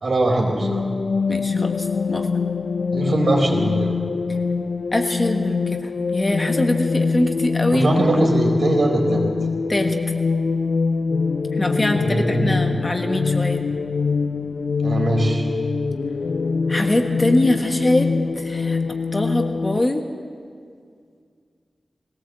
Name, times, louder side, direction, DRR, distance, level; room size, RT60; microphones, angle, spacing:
voice 1, 0.0-0.9 2.9-3.9 7.7-9.2 11.9-12.7 14.8-15.5, right 1 dB, 60° right, 1 dB, 4.1 m, -21 dB
sound 1, 0.6-19.8, left 4 dB, 75° left, 0.5 m, -24 dB
voice 2, 1.3-1.7 2.1-2.3 4.9-5.8 6.1-7.9 9.7-9.9 11.6-13.6 16.7-18.1 18.4-18.8 19.1-20.0, left 1 dB, 25° left, 4 dB, 1.4 m, -22 dB
20.5 x 17.5 x 7.6 m, 2.2 s
wide cardioid pair, 115°, 0 cm